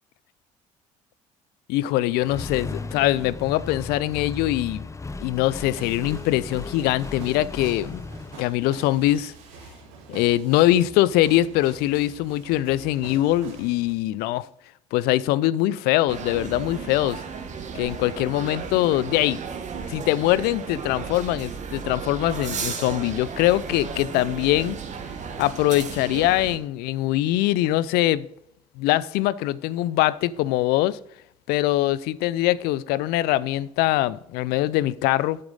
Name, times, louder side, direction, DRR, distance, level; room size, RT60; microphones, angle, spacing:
voice 1, 1.7-4.9 5.2-8.0 8.4-9.3 10.1-14.5 14.9-17.2 17.7-19.4 19.9-24.8 25.4-28.3 28.8-31.0 31.5-35.4, left 15 dB, 70° left, 0.5 m, -23 dB
Accelerating revving vroom, 2.2-8.4, left 3 dB, 15° left, 0.6 m, -36 dB
sound 1, 5.6-13.9, right 4 dB, 80° right, 1.7 m, -45 dB
sound 2, 16.1-26.6, right 6 dB, 45° right, 1.2 m, -34 dB
8.9 x 7.8 x 3.8 m
hypercardioid pair, 55°, 17 cm